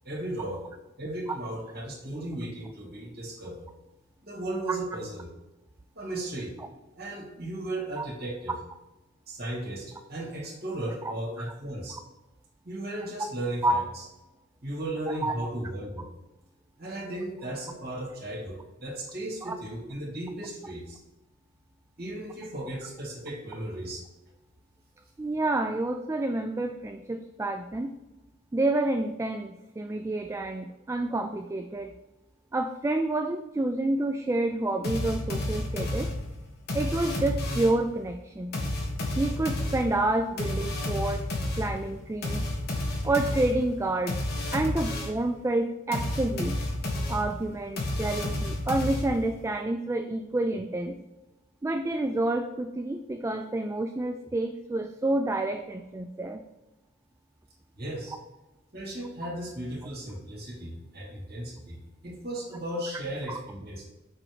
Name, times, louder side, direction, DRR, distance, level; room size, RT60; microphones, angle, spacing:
voice 1, 0.0-0.6 1.0-3.7 4.2-5.3 5.9-6.5 6.9-8.5 9.3-12.0 12.6-13.8 14.6-16.0 16.8-21.0 22.0-24.0 57.8-58.2 58.7-63.8, right 1 dB, 50° right, -3 dB, 2.5 m, -36 dB
voice 2, 25.2-27.9 28.5-31.9 32.5-36.1 36.7-38.6 39.2-41.2 41.6-42.5 43.0-44.2 44.5-46.6 47.1-51.0 51.6-56.4 63.3-63.4, right 2 dB, 15° right, 6 dB, 0.3 m, -29 dB
sound 1, 34.8-37.9 38.5-45.3 45.9-49.4, left 1 dB, 55° left, 1.5 m, -31 dB
6.1 x 4.4 x 4.9 m, 1.0 s
head